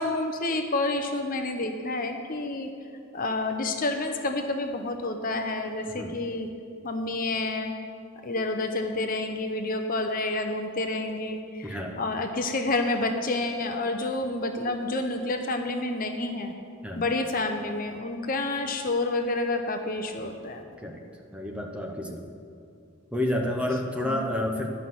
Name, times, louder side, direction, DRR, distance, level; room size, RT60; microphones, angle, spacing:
voice 1, 0.0-2.7 3.1-6.5 6.8-7.7 8.2-16.5 17.0-20.6 24.0-24.7, left 2 dB, 40° left, 5 dB, 0.7 m, -29 dB
voice 2, 11.6-12.0 16.8-17.0 20.8-21.0 21.3-22.4 23.1-24.7, left 1 dB, 5° right, 1 dB, 0.8 m, -30 dB
11.5 x 5.7 x 7.7 m, 2.4 s
head